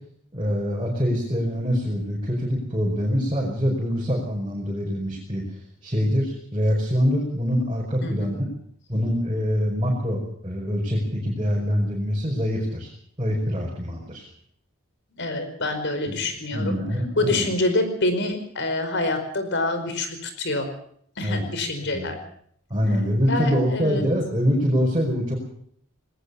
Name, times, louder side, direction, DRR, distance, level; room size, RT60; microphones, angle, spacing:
voice 1, 0.3-5.4 5.8-8.5 8.9-12.9 13.2-14.3 16.1-16.2 16.5-17.5 21.2-21.4 21.9-22.1 22.7-25.3, equal, 25° right, -2 dB, 5.1 m, -24 dB
voice 2, 8.0-8.3 15.2-16.8 17.2-20.7 21.2-22.2 23.3-24.0, left 2 dB, 60° left, 8 dB, 5.0 m, -26 dB
20.5 x 18.5 x 7.0 m, 0.64 s
head